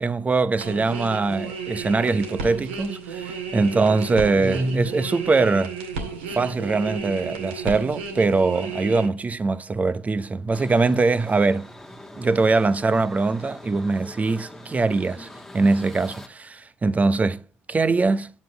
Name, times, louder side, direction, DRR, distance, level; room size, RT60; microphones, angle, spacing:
voice 1, 0.0-5.7 6.3-11.7 12.1-15.3 15.5-17.4 17.7-18.3, right 3 dB, 25° right, 0.9 m, -22 dB
sound 1, 0.6-9.1, right 5 dB, 85° right, 2.1 m, -33 dB
sound 2, 10.5-16.3, left 1 dB, 5° left, 1.5 m, -43 dB
9.5 x 7.4 x 4.8 m
hypercardioid pair, 60°, 6 cm